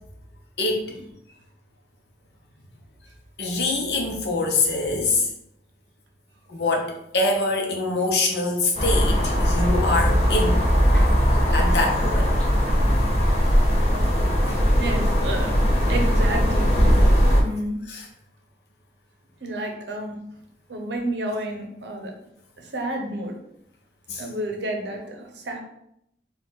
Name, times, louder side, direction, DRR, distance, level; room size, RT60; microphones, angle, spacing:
voice 1, 3.4-5.3 6.5-10.6 10.9-11.1 11.5-12.3 14.4-14.6 17.9-18.0 24.1-24.2, left 2 dB, 70° left, 1 dB, 0.9 m, -24 dB
sound 1, 8.8-17.4, equal, 40° left, 1.0 m, -19 dB
voice 2, 14.7-15.5 15.8-16.7 17.3-17.8 19.4-20.2 20.7-22.1 22.6-23.4 24.2-25.6, right 1 dB, 85° right, 3 dB, 0.8 m, -30 dB
4.3 x 2.4 x 3.8 m, 0.76 s
head